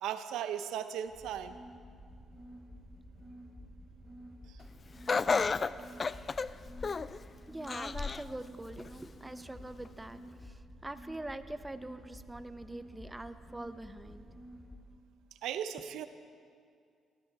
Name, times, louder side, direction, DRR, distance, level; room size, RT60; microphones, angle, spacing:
voice 1, 0.0-1.6 4.5-4.6 15.4-16.1, right 9 dB, 85° right, 11 dB, 0.7 m, -37 dB
sound 1, 1.1-14.8, equal, 10° left, 4.8 m, -51 dB
Laughter, 5.1-7.2 7.7-8.3 8.8-8.9 9.9-10.0, left 4 dB, 35° left, 0.4 m, -31 dB
voice 2, 7.5-14.3, right 2 dB, 10° right, 11 dB, 0.7 m, -44 dB
19.0 x 13.5 x 4.7 m, 2.2 s
cardioid pair, 90°, 0 cm